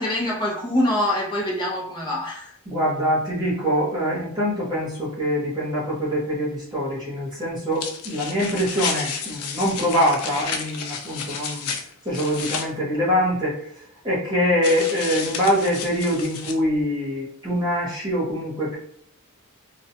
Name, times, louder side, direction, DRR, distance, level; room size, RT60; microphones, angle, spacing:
voice 1, 0.0-2.5, left 1 dB, 20° left, -4 dB, 0.7 m, -24 dB
voice 2, 2.7-11.7 12.0-13.6 14.0-18.8, equal, 20° right, -7 dB, 1.0 m, -24 dB
sound 1, 7.7-12.7 14.6-16.5, left 6 dB, 75° left, 0.4 m, -31 dB
2.3 x 2.2 x 2.8 m, 0.67 s
head